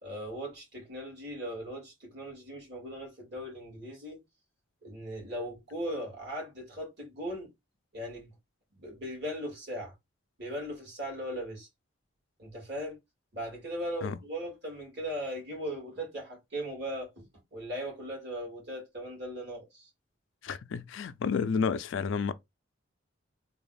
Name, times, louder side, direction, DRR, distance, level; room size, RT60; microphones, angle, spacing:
voice 1, 0.0-4.2 4.8-7.5 7.9-8.3 8.8-9.9 10.4-11.7 12.4-13.0 13.3-17.2 17.5-19.9, equal, 55° right, 1.9 m, -38 dB
voice 2, 20.4-22.3, left 5 dB, 65° left, 0.4 m, -30 dB
3.3 x 2.3 x 3.8 m
head